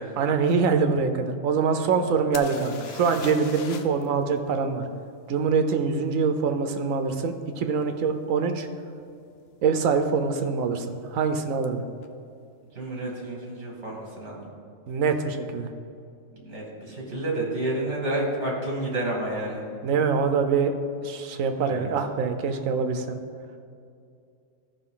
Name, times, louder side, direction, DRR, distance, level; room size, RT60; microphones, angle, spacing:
voice 1, 0.2-4.8 5.3-8.7 9.6-11.8 14.9-15.7 19.8-20.7 21.0-23.2, right 5 dB, 90° right, 7 dB, 1.1 m, -24 dB
sound 1, 2.3-4.1 4.3-4.4 7.8-7.9 8.6-8.8 9.0-9.6 11.6-11.7 12.0-12.1, left 6 dB, 60° left, 0.8 m, -40 dB
voice 2, 12.7-14.4 16.3-19.6 21.6-21.9, right 1 dB, 60° right, -3 dB, 2.4 m, -30 dB
13.5 x 5.2 x 3.8 m, 2.5 s
omnidirectional pair, 1.3 m